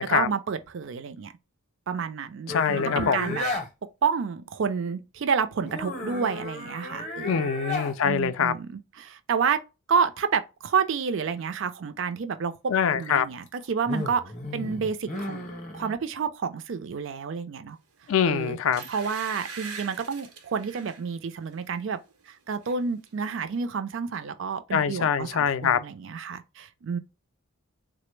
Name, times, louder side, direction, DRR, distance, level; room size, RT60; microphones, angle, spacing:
voice 1, 0.1-1.3 1.9-3.4 4.0-7.5 8.0-9.6 9.9-14.2 14.5-17.8 18.2-18.6 18.9-22.0 22.3-27.0, right 6 dB, 55° right, 0.4 m, -29 dB
voice 2, 2.5-3.4 7.2-8.5 12.7-13.3 18.1-18.8 24.7-25.8, left 7 dB, 65° left, 0.3 m, -24 dB
sound 1, 2.5-3.7 5.6-8.0 13.2-15.9, left 2 dB, 35° left, 0.6 m, -34 dB
sound 2, 18.0-18.2 18.7-21.0 21.5-21.7 22.1-22.8 23.1-23.2, right 5 dB, 90° right, 0.8 m, -42 dB
3.6 x 2.0 x 3.1 m
head